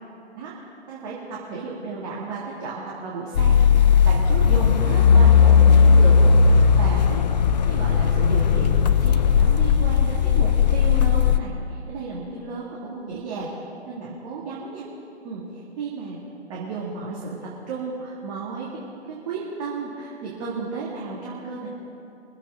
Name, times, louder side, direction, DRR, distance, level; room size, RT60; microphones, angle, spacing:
voice 1, 0.9-3.6 4.0-13.5 13.9-14.8 15.2-15.4 15.8-16.2 16.5-18.8 19.1-21.7, right 4 dB, 30° right, -6 dB, 2.0 m, -33 dB
sound 1, 3.3-11.4, left 6 dB, 40° left, 0.5 m, -16 dB
23.5 x 8.1 x 4.3 m, 2.8 s
figure-of-eight pair, 125°, 34 cm